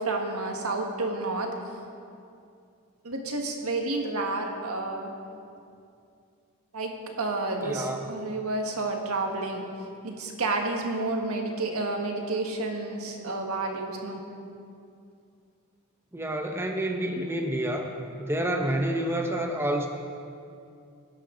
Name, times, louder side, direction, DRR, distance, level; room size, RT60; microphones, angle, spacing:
voice 1, 0.0-1.6 3.0-5.1 6.7-9.6 10.0-14.2, right 2 dB, 80° right, 2 dB, 1.6 m, -30 dB
voice 2, 7.6-8.1 16.1-17.9 18.2-19.9, right 1 dB, 10° right, 3 dB, 0.7 m, -28 dB
19.5 x 11.0 x 3.8 m, 2.5 s
head